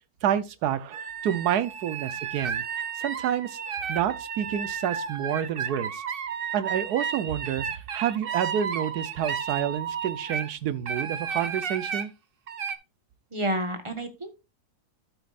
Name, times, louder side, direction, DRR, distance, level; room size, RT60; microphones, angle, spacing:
voice 1, 0.2-2.6 3.0-3.6 3.9-6.0 6.5-12.1, right 9 dB, 85° right, 1.3 m, -28 dB
sound 1, 0.9-10.5 10.9-12.1 12.5-12.7, right 7 dB, 45° right, 0.8 m, -33 dB
voice 2, 13.3-14.3, right 1 dB, 20° right, 1.3 m, -29 dB
12.0 x 8.1 x 2.5 m
omnidirectional pair, 1.7 m